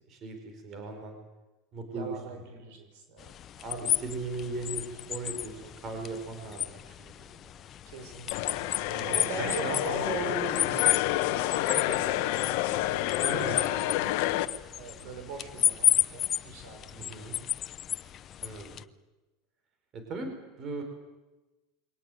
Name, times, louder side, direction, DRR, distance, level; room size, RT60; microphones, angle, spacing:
voice 1, 0.1-1.2 1.7-2.4 3.6-7.1 7.4-7.5 8.9-10.3 13.2-13.6 17.0-17.4 18.4-18.8 19.9-20.3 20.6-20.8, right 3 dB, 30° right, 5 dB, 4.5 m, -38 dB
voice 2, 1.9-3.3 7.9-8.6 9.1-10.9 11.3-12.6 13.3-14.1 14.7-17.3, right 4 dB, 65° right, 7 dB, 5.6 m, -40 dB
sound 1, 3.2-18.8, left 11 dB, 30° left, 0.7 m, -33 dB
sound 2, 8.3-14.5, left 15 dB, 60° left, 1.3 m, -29 dB
23.0 x 18.5 x 9.2 m, 1.1 s
supercardioid pair, 150°, 0 cm